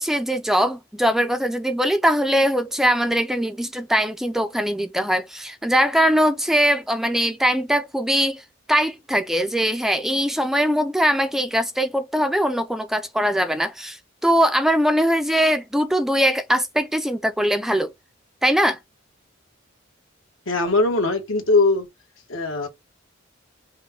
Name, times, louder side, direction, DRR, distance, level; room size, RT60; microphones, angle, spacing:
voice 1, 0.0-8.4 8.7-17.9 18.4-18.8, equal, ahead, 0.4 m, -21 dB
voice 2, 20.5-21.9 22.3-22.7, left 3 dB, 80° left, 1.5 m, -20 dB
5.4 x 2.2 x 3.6 m
head